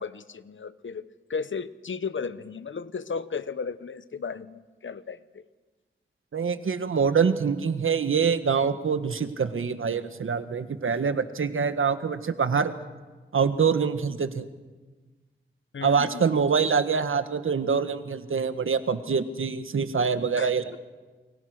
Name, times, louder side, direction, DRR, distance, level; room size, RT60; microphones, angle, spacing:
voice 1, 0.0-5.4 15.7-16.2 20.4-20.8, left 5 dB, 70° left, 14 dB, 1.0 m, -35 dB
voice 2, 6.3-12.7 13.3-14.5 15.8-20.8, right 6 dB, 85° right, 10 dB, 1.5 m, -25 dB
29.0 x 23.0 x 6.4 m, 1.3 s
wide cardioid pair, 65°, 21 cm